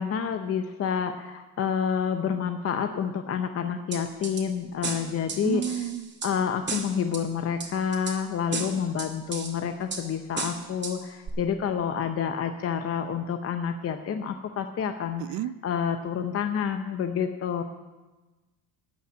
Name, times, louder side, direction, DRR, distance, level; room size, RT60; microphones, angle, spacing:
voice 1, 0.0-5.6 6.2-15.2 15.6-17.6, left 7 dB, 35° left, 7 dB, 0.7 m, -28 dB
sound 1, 3.9-4.4 4.8-6.3 6.7-7.2 7.6-8.2 8.5-9.5 9.9-10.0 10.4-10.9 11.3-11.4, right 4 dB, 25° right, 1.8 m, -33 dB
voice 2, 5.4-6.1 15.2-15.6, right 11 dB, 60° right, 18 dB, 0.5 m, -31 dB
12.5 x 5.6 x 9.2 m, 1.2 s
cardioid pair, 120°, 40 cm